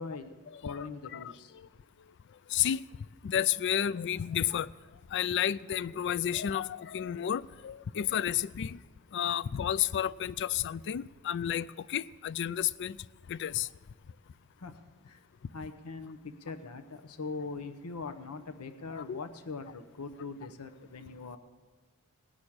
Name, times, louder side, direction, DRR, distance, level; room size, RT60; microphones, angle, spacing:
voice 1, 0.0-0.3 0.6-1.5 14.6-14.8 15.1-15.2 15.5-21.4, left 4 dB, 85° left, 0.9 m, -41 dB
voice 2, 2.5-2.8 3.2-4.7 5.1-8.8 9.1-13.0 13.3-13.7 18.9-19.2, left 10 dB, 55° left, 0.4 m, -31 dB
18.5 x 6.3 x 8.7 m
head